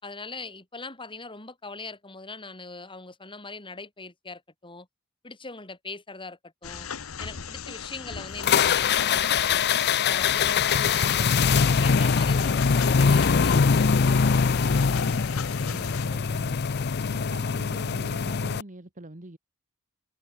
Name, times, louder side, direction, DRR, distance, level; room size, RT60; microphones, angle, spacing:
voice 1, 0.0-4.9 5.2-6.9 7.2-9.7 10.1-14.2, left 3 dB, 25° left, 5.5 m, -41 dB
sound 1, 6.6-16.1, left 6 dB, 70° left, 1.1 m, -38 dB
sound 2, 8.4-18.6, left 6 dB, 50° left, 0.6 m, -23 dB
voice 2, 15.5-16.6 17.0-19.4, right 1 dB, 35° right, 1.8 m, -44 dB
head